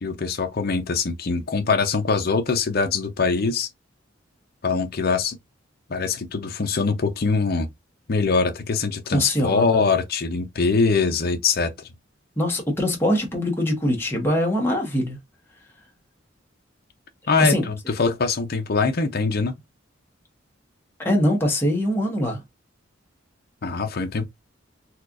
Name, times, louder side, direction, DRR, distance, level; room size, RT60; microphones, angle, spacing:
voice 1, 0.0-3.7 4.6-5.4 5.9-7.7 8.1-11.9 17.3-19.5 23.6-24.2, left 4 dB, 50° left, 0.6 m, -23 dB
voice 2, 9.1-9.8 12.4-15.2 17.4-17.7 21.0-22.4, equal, 10° left, 1.1 m, -23 dB
4.3 x 2.4 x 2.5 m
head